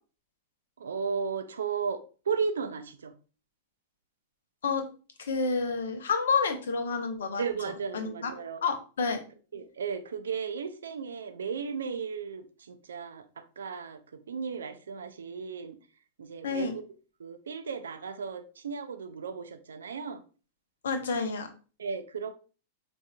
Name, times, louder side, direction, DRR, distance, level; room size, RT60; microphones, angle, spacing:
voice 1, 0.8-2.0 2.3-3.1 7.4-8.6 9.5-15.8 16.2-16.8 17.2-20.2 21.8-22.4, right 6 dB, 70° right, 0.4 m, -35 dB
voice 2, 5.2-7.4 7.9-8.3 8.6-9.2 16.4-16.7 20.8-21.5, left 4 dB, 65° left, 0.6 m, -29 dB
4.8 x 2.5 x 2.2 m
figure-of-eight pair, 95°, 0 cm